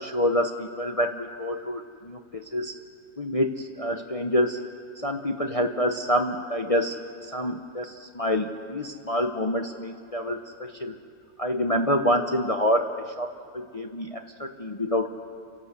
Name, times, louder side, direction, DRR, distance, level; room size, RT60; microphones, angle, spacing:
voice 1, 0.0-2.7 3.2-4.6 5.0-11.0 11.4-15.1, left 1 dB, 45° left, 4 dB, 0.4 m, -27 dB
30.0 x 11.0 x 8.1 m, 2.3 s
omnidirectional pair, 1.7 m